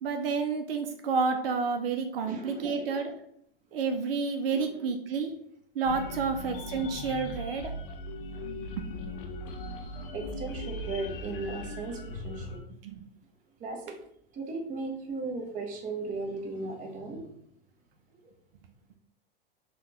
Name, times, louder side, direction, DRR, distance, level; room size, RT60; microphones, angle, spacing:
voice 1, 0.0-3.1 3.7-5.3 5.8-7.7 12.8-13.0, right 5 dB, 75° right, 6 dB, 0.5 m, -30 dB
voice 2, 2.2-3.1 4.5-4.6 6.0-6.2 10.1-12.6 13.6-13.9 14.3-17.3, right 3 dB, 25° right, 2 dB, 0.7 m, -37 dB
sound 1, 5.8-12.6, left 1 dB, 70° left, 0.6 m, -39 dB
3.6 x 2.2 x 2.8 m, 0.69 s
hypercardioid pair, 110°, 29 cm